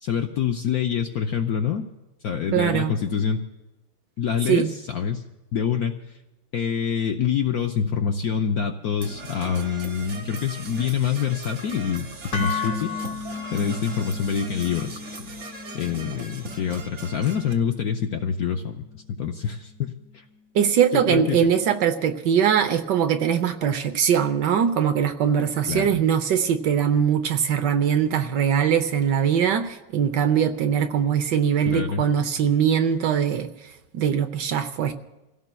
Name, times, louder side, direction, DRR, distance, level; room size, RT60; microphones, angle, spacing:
voice 1, 0.0-1.9 2.2-3.4 4.2-5.2 5.5-6.0 6.5-12.9 13.5-15.0 15.7-20.2 20.9-21.5 25.7-26.0 31.7-32.0, left 7 dB, 70° left, 4 dB, 0.9 m, -26 dB
voice 2, 2.5-2.9 4.5-4.8 20.5-33.5 33.9-34.9, right 8 dB, 70° right, 9 dB, 1.2 m, -21 dB
Percussion / Brass instrument, 9.0-17.5, right 3 dB, 45° right, 1.2 m, -39 dB
sound 1, 12.3-20.4, left 5 dB, 50° left, 1.6 m, -36 dB
29.0 x 16.5 x 2.3 m, 1.0 s
omnidirectional pair, 2.2 m